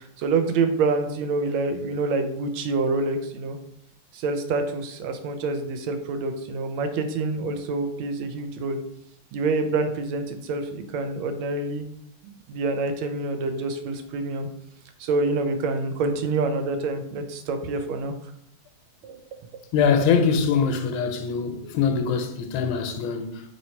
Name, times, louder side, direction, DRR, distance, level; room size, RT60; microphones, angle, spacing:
voice 1, 0.0-3.6 4.1-8.8 9.3-11.9 12.2-14.5 15.0-18.1 19.0-19.2, right 3 dB, 85° right, 1.4 m, -27 dB
voice 2, 19.7-23.4, left 6 dB, 85° left, 1.4 m, -23 dB
3.1 x 2.9 x 4.3 m
omnidirectional pair, 2.2 m